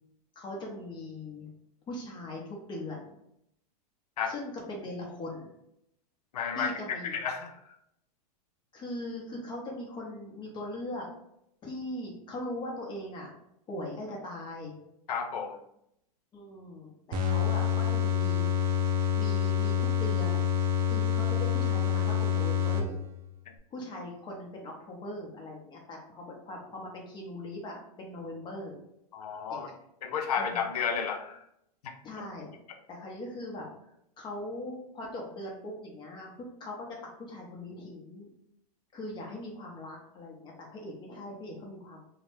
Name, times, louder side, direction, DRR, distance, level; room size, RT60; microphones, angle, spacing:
voice 1, 0.4-1.5 1.9-2.4 2.7-3.2 4.3-5.5 6.6-7.2 8.7-11.1 11.6-13.4 13.7-14.7 16.3-18.5 19.1-20.5 20.9-23.0 23.7-28.8 29.5-29.7 30.3-30.6 32.0-32.5 32.9-33.6 34.2-38.3 38.9-42.0, left 1 dB, 25° left, -1 dB, 0.7 m, -40 dB
voice 2, 6.3-6.7 7.1-7.5 15.1-15.6 29.1-29.7 30.0-31.4 31.8-31.9, left 6 dB, 80° left, 5 dB, 0.6 m, -32 dB
sound 1, 17.1-23.2, left 8 dB, 50° right, 0.6 m, -27 dB
2.8 x 2.1 x 3.0 m, 0.76 s
hypercardioid pair, 125°, 20 cm